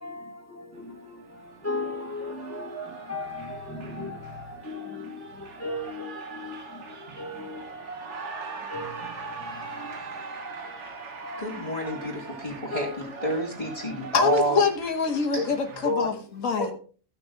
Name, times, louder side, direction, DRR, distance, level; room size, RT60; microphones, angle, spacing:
voice 1, 0.0-1.1 1.6-5.2 5.6-6.8 7.2-7.6 8.7-9.0 9.7-10.0 11.2-11.5 12.7-13.0, left 2 dB, 10° left, 2.0 m, -36 dB
Cheering, 0.8-15.9, right 4 dB, 60° right, 1.6 m, -41 dB
voice 2, 11.4-14.6 15.3-15.5 15.8-16.2 16.6-16.7, equal, 25° left, 2.6 m, -29 dB
voice 3, 14.1-16.7, left 5 dB, 75° left, 1.8 m, -25 dB
15.0 x 6.1 x 3.8 m
omnidirectional pair, 1.4 m